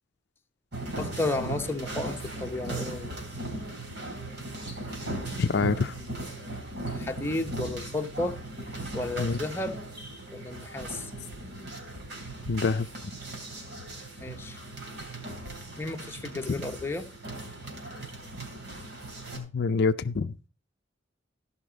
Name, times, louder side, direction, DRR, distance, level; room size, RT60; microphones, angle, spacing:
sound 1, 0.7-19.4, right 2 dB, 60° right, 3.5 m, -38 dB
voice 1, 1.0-3.1 6.9-8.4 8.9-9.8 10.3-11.1 14.2-14.6 15.8-17.1, left 2 dB, 15° left, 0.9 m, -33 dB
voice 2, 5.4-6.0 9.2-9.4 12.5-12.9 19.4-20.3, left 4 dB, 60° left, 0.5 m, -26 dB
14.0 x 5.7 x 5.0 m
head